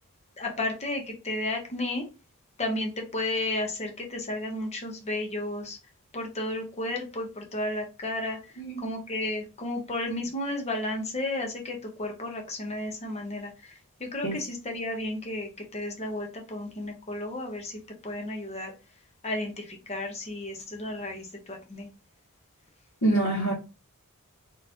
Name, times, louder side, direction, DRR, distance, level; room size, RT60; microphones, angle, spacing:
voice 1, 0.4-2.0 2.6-5.8 6.1-8.4 8.8-13.7 14.0-18.7 19.2-21.9, left 1 dB, 30° left, 1.0 m, -33 dB
voice 2, 8.6-8.9 14.2-14.4 23.0-23.5, right 2 dB, 70° left, 1.9 m, -25 dB
4.1 x 3.3 x 2.9 m
head